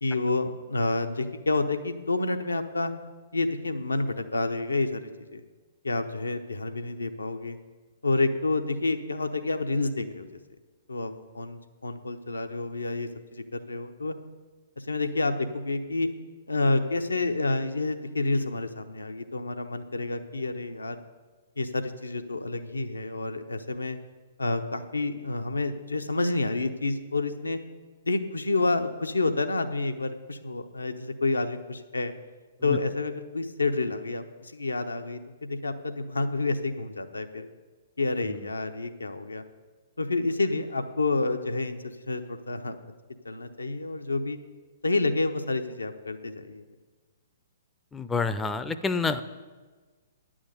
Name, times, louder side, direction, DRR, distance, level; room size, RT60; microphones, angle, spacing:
voice 1, 0.0-2.9 3.3-5.4 5.8-7.6 8.0-10.3 10.9-14.1 14.8-16.1 16.5-21.0 21.6-24.0 24.4-27.6 28.0-32.1 32.6-37.5 38.0-39.4 40.0-42.8 43.2-44.4 44.8-46.6, left 3 dB, 75° left, 8 dB, 0.8 m, -29 dB
voice 2, 47.9-49.2, left 4 dB, 10° left, 11 dB, 0.5 m, -27 dB
10.0 x 6.3 x 8.0 m, 1.4 s
figure-of-eight pair, 115°, 0 cm